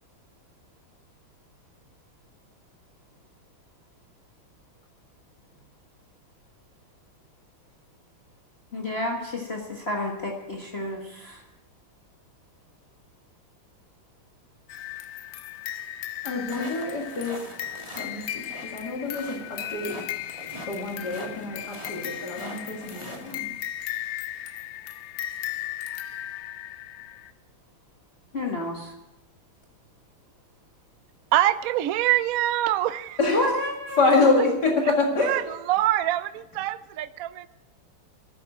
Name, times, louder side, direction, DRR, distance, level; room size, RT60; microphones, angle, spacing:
voice 1, 8.7-11.4 28.3-28.9 33.3-34.3, left 1 dB, 30° left, -1 dB, 1.6 m, -30 dB
sound 1, 14.7-27.3, left 12 dB, 70° left, 0.8 m, -36 dB
voice 2, 16.2-17.4 18.0-20.0 20.7-23.5 33.2-33.4 34.0-35.4, left 3 dB, 50° left, 0 dB, 2.5 m, -26 dB
sound 2, 16.5-23.4, right 1 dB, 15° right, 2.1 m, -43 dB
voice 3, 31.3-33.2 35.2-37.5, right 14 dB, 85° right, 13 dB, 0.7 m, -25 dB
12.5 x 9.6 x 8.9 m, 0.99 s
omnidirectional pair, 2.3 m